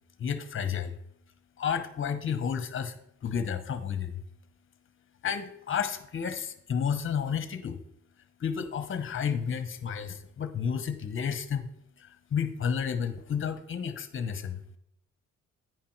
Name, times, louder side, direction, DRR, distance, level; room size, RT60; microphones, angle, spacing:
voice 1, 0.2-1.0 1.6-2.9 3.2-4.2 5.2-7.8 8.4-11.7 12.0-14.6, left 7 dB, 40° left, 10 dB, 1.0 m, -31 dB
9.4 x 5.2 x 4.5 m, 0.74 s
cardioid pair, 90°, 30 cm